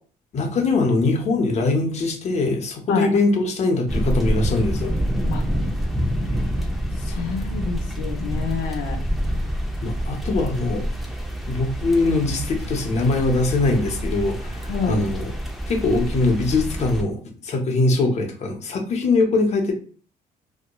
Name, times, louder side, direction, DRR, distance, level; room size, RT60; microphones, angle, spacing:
voice 1, 0.3-5.0 7.1-7.3 9.8-10.9 11.5-15.3 15.7-19.7, left 3 dB, 40° left, 2 dB, 0.7 m, -22 dB
sound 1, 3.9-17.0, equal, ahead, 0.5 m, -27 dB
voice 2, 7.0-9.0 14.7-15.1, left 6 dB, 75° left, 1 dB, 0.5 m, -27 dB
2.8 x 2.2 x 2.2 m, 0.42 s
cardioid pair, 110°, 17 cm